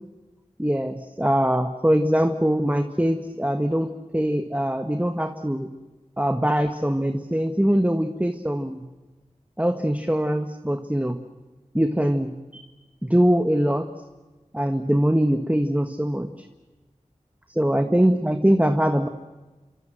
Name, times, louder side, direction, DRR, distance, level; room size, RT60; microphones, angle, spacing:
voice 1, 0.6-5.7 6.2-8.8 9.6-11.2 11.7-12.6 13.0-13.8 14.5-16.3 17.5-19.1, equal, 10° right, 7 dB, 1.4 m, -22 dB
27.5 x 25.5 x 7.8 m, 1.2 s
wide cardioid pair, 50°, 13 cm